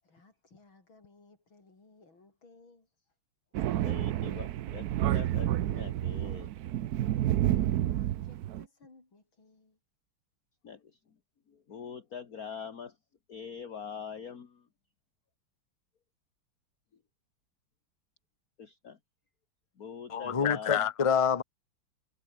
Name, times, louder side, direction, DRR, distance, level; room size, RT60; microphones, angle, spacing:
voice 1, 0.0-2.9 7.1-9.8, left 3 dB, 75° left, 6.5 m, -58 dB
Thunder, 3.5-8.6, right 13 dB, 65° right, 1.0 m, -30 dB
voice 2, 3.8-6.5 10.6-11.0 11.5-13.0 13.3-14.7 18.6-19.0 19.8-20.8, left 7 dB, 45° left, 2.1 m, -44 dB
voice 3, 20.1-21.4, left 7 dB, 30° left, 0.6 m, -26 dB
omnidirectional pair, 2.2 m